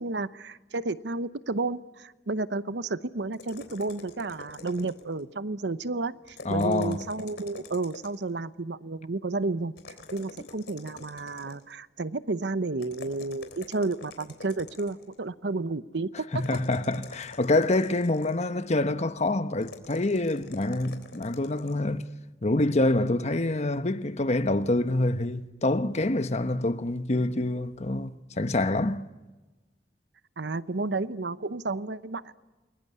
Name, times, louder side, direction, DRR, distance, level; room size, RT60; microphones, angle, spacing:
voice 1, 0.0-9.7 10.1-16.1 30.4-32.3, right 3 dB, 75° right, 0.9 m, -31 dB
sound 1, 3.3-5.2 6.2-8.3 9.8-11.7 12.8-15.2 16.4-18.6 19.6-21.8, left 3 dB, 75° left, 3.6 m, -46 dB
voice 2, 6.4-7.0 16.3-22.1 22.4-28.1 28.4-29.1, left 2 dB, 40° left, 1.1 m, -26 dB
29.0 x 21.0 x 9.6 m
head